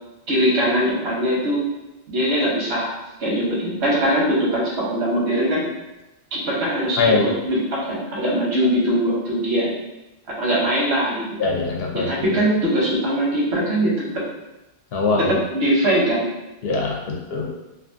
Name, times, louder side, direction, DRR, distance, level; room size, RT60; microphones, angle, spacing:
voice 1, 0.3-1.6 2.1-5.6 6.3-9.7 10.3-11.3 11.9-14.2 15.2-16.3, equal, 90° right, -4 dB, 1.1 m, -21 dB
voice 2, 7.0-7.3 11.4-12.1 14.9-15.3 16.6-17.5, left 3 dB, 70° left, -1 dB, 0.8 m, -22 dB
2.5 x 2.4 x 2.5 m, 0.98 s
omnidirectional pair, 1.1 m